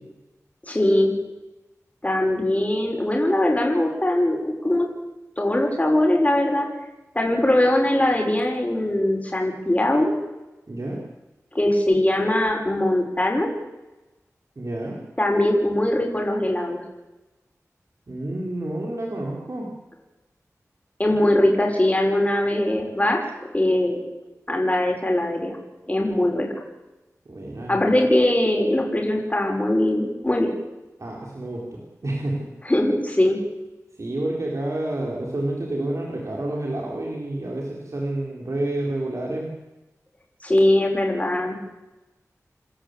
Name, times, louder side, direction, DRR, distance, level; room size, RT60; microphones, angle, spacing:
voice 1, 0.7-1.1 2.0-4.9 5.4-6.7 7.1-10.1 11.5-13.5 15.2-16.8 21.0-23.2 23.5-24.0 24.5-25.6 25.9-26.5 27.7-30.5 32.6-33.4 40.4-41.6, left 1 dB, 25° left, 1 dB, 6.2 m, -21 dB
voice 2, 10.7-11.0 14.6-15.0 18.1-19.7 27.2-27.7 31.0-32.5 34.0-39.5, right 1 dB, 60° right, -1 dB, 4.7 m, -29 dB
28.0 x 13.5 x 8.5 m, 1.0 s
wide cardioid pair, 65°, 6 cm